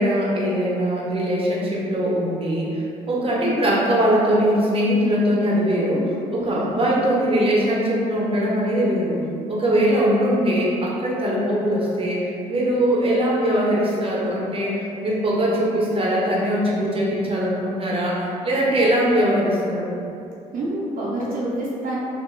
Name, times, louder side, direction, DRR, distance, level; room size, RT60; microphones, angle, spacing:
voice 1, 0.0-9.2 9.5-20.0, equal, 35° right, -5 dB, 0.9 m, -21 dB
voice 2, 20.5-22.0, right 1 dB, 60° right, -7 dB, 0.8 m, -27 dB
3.2 x 2.2 x 3.7 m, 2.6 s
hypercardioid pair, 50°, 16 cm